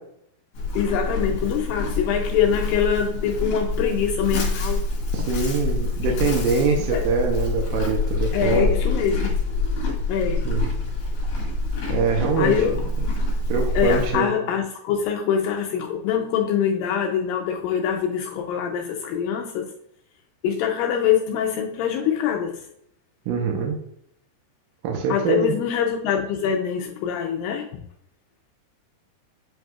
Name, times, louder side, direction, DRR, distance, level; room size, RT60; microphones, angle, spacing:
Livestock farm animals working animals, 0.5-14.2, left 2 dB, 60° left, 3.0 m, -26 dB
voice 1, 0.8-4.8 6.9-7.0 8.3-9.3 10.1-10.5 12.4-12.8 13.8-19.7 20.4-22.6 25.1-27.8, left 8 dB, 90° left, 2 dB, 2.0 m, -24 dB
voice 2, 5.1-8.7 10.4-10.7 11.9-12.6 13.5-14.3 23.3-23.8 24.8-25.5, right 4 dB, 75° right, 0 dB, 2.2 m, -24 dB
7.9 x 5.2 x 2.3 m, 0.73 s
omnidirectional pair, 4.6 m